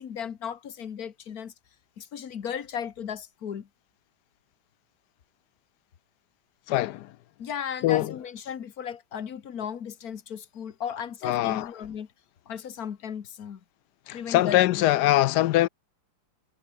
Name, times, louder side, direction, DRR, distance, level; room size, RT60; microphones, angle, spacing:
voice 1, 0.0-1.5 2.0-3.7 7.4-12.1 12.5-13.6 14.1-14.6, left 8 dB, 55° left, 1.7 m, -35 dB
voice 2, 6.7-7.1 7.8-8.1 11.2-11.7 14.1-15.7, left 15 dB, 75° left, 1.1 m, -23 dB
omnidirectional pair, 2.0 m